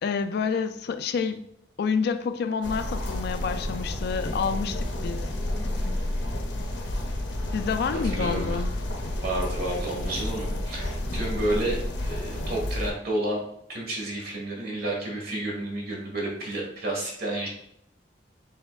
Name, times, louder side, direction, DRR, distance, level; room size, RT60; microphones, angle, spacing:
voice 1, 0.0-1.5 1.8-5.2 7.5-8.7, left 5 dB, 60° left, 9 dB, 0.3 m, -28 dB
sound 1, 2.6-12.9, left 1 dB, 90° left, 0.7 m, -30 dB
voice 2, 7.9-8.6 9.2-13.4 13.7-17.5, right 1 dB, 60° right, -2 dB, 1.5 m, -31 dB
5.5 x 3.5 x 2.2 m, 0.73 s
head